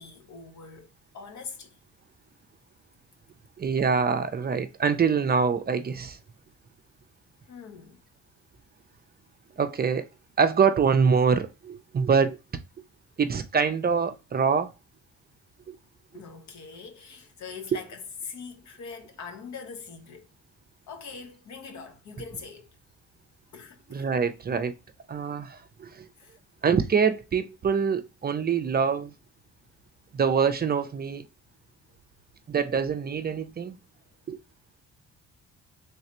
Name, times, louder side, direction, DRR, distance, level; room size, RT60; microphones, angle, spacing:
voice 1, 0.0-1.8 7.5-8.0 16.1-20.3 20.9-22.7 23.5-24.1 26.2-26.4, left 5 dB, 70° left, 1.0 m, -42 dB
voice 2, 3.6-6.2 9.6-10.1 10.4-12.4 13.2-14.7 15.7-15.8 23.9-24.7 25.1-26.1 26.6-29.1 30.1-31.3 32.5-33.8 34.3-34.4, right 6 dB, 30° right, 0.5 m, -25 dB
3.3 x 3.1 x 2.8 m
cardioid pair, 90°, 30 cm